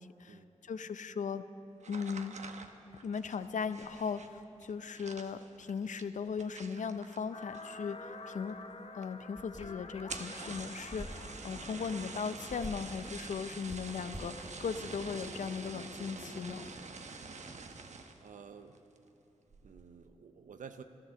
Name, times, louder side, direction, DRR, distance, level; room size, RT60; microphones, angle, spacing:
voice 1, 0.0-1.4 1.9-2.4 3.0-8.6 8.9-16.7, left 6 dB, 75° left, 12 dB, 0.5 m, -38 dB
sound 1, 1.8-7.9 8.2-8.7 9.0-9.1 9.4-9.5 9.9-18.3 18.7-19.1 19.5-19.9, right 4 dB, 65° right, 0.9 m, -47 dB
sound 2, 7.3-16.7, left 3 dB, 50° left, 0.9 m, -51 dB
sound 3, 9.4-10.0 10.9-11.4 12.5-12.9 13.7-14.4, equal, ahead, 2.4 m, -46 dB
voice 2, 18.2-18.8 19.6-20.8, right 6 dB, 90° right, 8 dB, 0.6 m, -51 dB
14.0 x 12.0 x 6.9 m, 2.9 s
cardioid pair, 50°, 13 cm